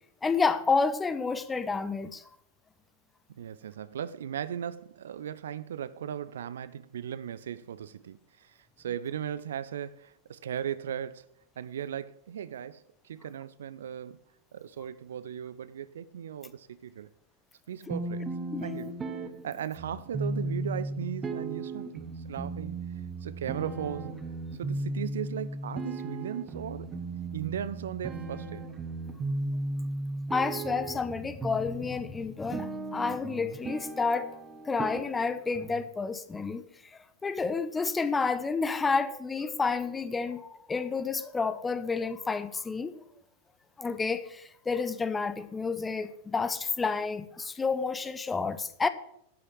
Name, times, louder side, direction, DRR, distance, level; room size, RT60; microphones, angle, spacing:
voice 1, 0.2-2.2 18.5-18.6 30.3-34.3 34.6-36.6 37.2-43.0 43.8-48.9, left 4 dB, 15° left, 0.9 m, -30 dB
voice 2, 3.3-11.3 11.6-14.2 14.5-17.1 17.7-18.3 18.6-18.9 19.4-22.8 23.2-24.2 24.6-26.9 27.3-28.7, right 9 dB, 65° right, 0.5 m, -37 dB
sound 1, 17.9-35.9, right 2 dB, 20° right, 1.2 m, -36 dB
12.0 x 6.4 x 7.8 m
figure-of-eight pair, 90°, 0 cm